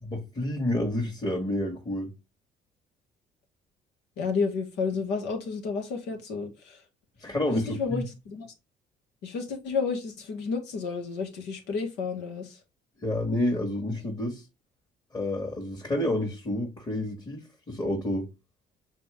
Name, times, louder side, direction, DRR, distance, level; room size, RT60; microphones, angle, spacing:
voice 1, 0.0-2.1 7.2-8.0 13.0-14.4 15.1-18.3, left 1 dB, 25° left, 2.0 m, -29 dB
voice 2, 4.2-6.8 7.5-8.5 9.2-12.6, left 5 dB, 90° left, 2.1 m, -31 dB
7.0 x 4.2 x 3.6 m
cardioid pair, 110°, 17 cm